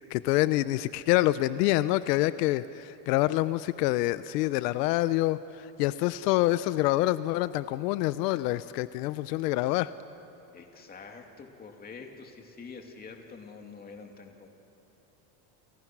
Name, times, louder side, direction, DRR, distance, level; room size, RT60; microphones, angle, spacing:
voice 1, 0.1-5.4 5.8-9.9, left 17 dB, 80° left, 15 dB, 0.8 m, -26 dB
voice 2, 10.5-14.5, left 4 dB, 20° left, 3 dB, 2.6 m, -46 dB
30.0 x 29.5 x 6.1 m, 2.9 s
cardioid pair, 155°, 47 cm